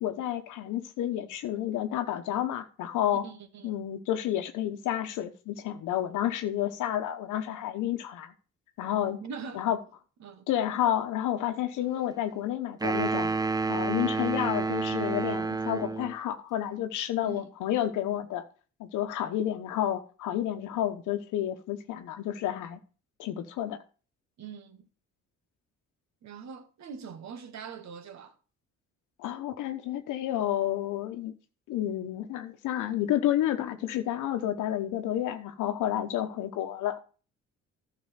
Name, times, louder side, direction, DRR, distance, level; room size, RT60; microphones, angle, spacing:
voice 1, 0.0-3.2 3.6-8.3 8.8-9.2 9.5-9.8 10.5-13.3 13.7-18.4 18.8-22.8 23.2-23.8 29.2-31.3 31.7-37.0, left 11 dB, 90° left, 1.1 m, -30 dB
voice 2, 3.2-3.9 9.2-9.7 10.2-10.5 17.2-17.5 24.4-24.9 26.2-28.4, right 6 dB, 65° right, 1.6 m, -43 dB
sound 1, 12.8-16.2, right 4 dB, 15° right, 0.6 m, -29 dB
10.5 x 5.9 x 5.7 m
cardioid pair, 90°, 30 cm